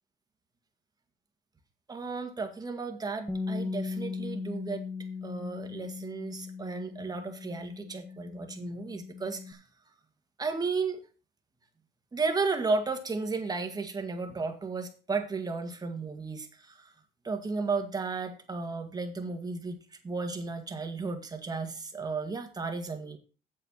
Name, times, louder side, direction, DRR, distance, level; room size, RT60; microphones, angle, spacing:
voice 1, 1.9-4.8 5.2-9.6 10.4-11.0 12.1-16.8 17.2-19.8 20.0-23.2, right 4 dB, 20° right, 5 dB, 2.1 m, -34 dB
Bass guitar, 3.3-9.5, left 4 dB, 5° left, 1.1 m, -38 dB
7.8 x 7.6 x 5.7 m, 0.35 s
cardioid pair, 110°, 17 cm